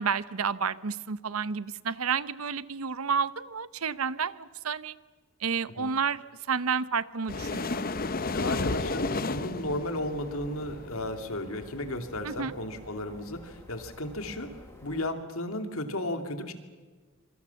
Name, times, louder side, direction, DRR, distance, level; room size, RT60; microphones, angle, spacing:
voice 1, 0.0-4.9 5.4-6.2 6.5-7.8 12.2-12.5, right 6 dB, 85° right, 16 dB, 0.9 m, -30 dB
sound 1, 7.3-11.6, left 3 dB, 45° left, 1.0 m, -32 dB
voice 2, 8.3-14.5 14.8-16.5, left 1 dB, 75° left, 7 dB, 2.7 m, -34 dB
sound 2, 9.9-15.0, equal, 10° left, 6.7 m, -50 dB
26.0 x 24.5 x 7.2 m, 1.4 s
head